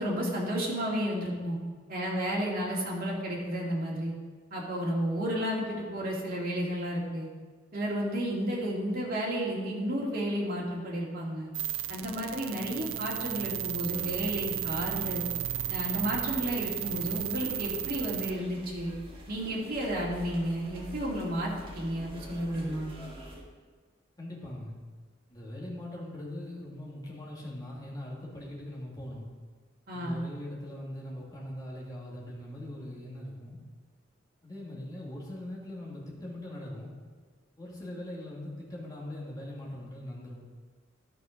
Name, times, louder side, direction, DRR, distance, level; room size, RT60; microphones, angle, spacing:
voice 1, 0.0-1.6 1.9-4.1 4.5-7.3 7.7-11.5 11.9-15.2 15.7-18.9 19.3-22.9 29.9-30.2, equal, 50° right, -3 dB, 2.3 m, -32 dB
sound 1, 11.5-18.3, right 12 dB, 80° right, 0.5 m, -34 dB
sound 2, 13.9-23.4, right 1 dB, 30° right, 1.7 m, -46 dB
voice 2, 24.2-24.8 25.3-29.3 29.9-33.6 34.4-36.9 37.6-40.4, left 1 dB, 20° left, -5 dB, 2.3 m, -41 dB
11.5 x 5.6 x 5.2 m, 1.5 s
head